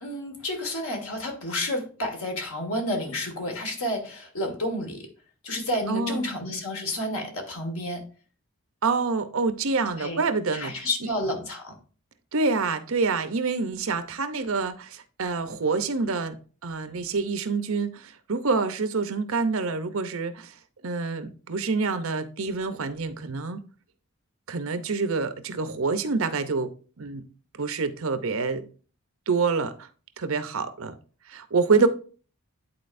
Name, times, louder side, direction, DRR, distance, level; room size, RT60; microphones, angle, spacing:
voice 1, 0.0-5.1 5.4-8.0 10.0-10.2 10.5-11.7 31.7-31.9, left 1 dB, 80° left, 1.8 m, -30 dB
voice 2, 5.9-6.3 8.8-10.9 12.3-20.5 20.8-23.6 24.5-27.2 27.6-28.7 29.3-29.9 30.2-30.9 31.3-31.9, right 4 dB, 70° right, 0.7 m, -27 dB
10.5 x 4.2 x 2.6 m
head